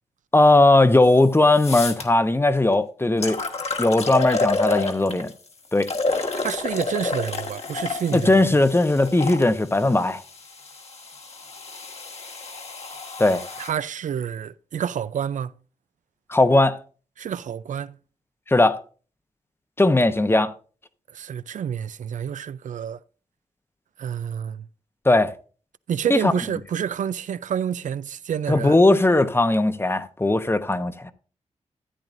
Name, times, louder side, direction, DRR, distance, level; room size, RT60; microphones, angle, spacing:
voice 1, 0.3-3.4 3.8-5.3 5.7-6.3 8.1-10.2 13.2-13.4 16.3-16.8 18.5-18.8 19.8-20.5 25.0-25.3 26.1-26.3 28.5-31.1, left 2 dB, 20° left, 0.8 m, -18 dB
sound 1, 1.0-1.1 1.5-2.0 2.7-2.8 3.2-5.3 5.8-9.4 10.3-13.7, left 3 dB, 55° left, 1.7 m, -29 dB
voice 2, 6.4-8.6 13.6-15.5 17.2-18.0 21.1-23.0 24.0-24.7 25.9-28.8, right 8 dB, 75° right, 0.4 m, -28 dB
14.0 x 8.9 x 2.6 m
cardioid pair, 85°, 13 cm